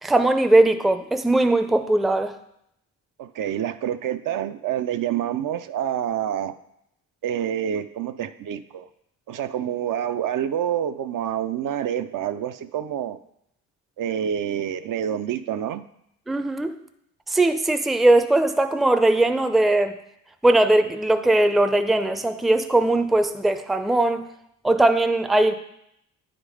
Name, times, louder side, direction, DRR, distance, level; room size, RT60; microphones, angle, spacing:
voice 1, 0.0-2.3 16.3-16.8 17.3-20.0 20.4-24.2 24.6-25.5, right 2 dB, ahead, 8 dB, 0.5 m, -19 dB
voice 2, 3.2-6.5 7.2-8.9 9.3-13.2 14.0-15.8, right 10 dB, 55° right, 9 dB, 0.5 m, -27 dB
9.7 x 3.7 x 4.9 m, 0.76 s
supercardioid pair, 65°, 38 cm